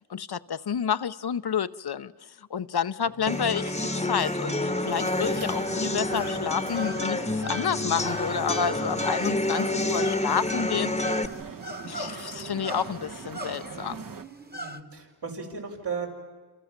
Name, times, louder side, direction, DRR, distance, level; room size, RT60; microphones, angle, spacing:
voice 1, 0.1-2.1 2.5-10.9 11.8-14.0, left 7 dB, 70° left, 0.8 m, -30 dB
sound 1, 3.2-14.2, right 5 dB, 55° right, 1.2 m, -41 dB
sound 2, 3.3-11.3, left 2 dB, 15° left, 1.1 m, -29 dB
sound 3, 5.7-14.8, right 2 dB, 25° right, 1.4 m, -40 dB
voice 2, 14.5-16.1, right 5 dB, 80° right, 6.4 m, -36 dB
28.0 x 28.0 x 7.4 m
wide cardioid pair, 70°, 40 cm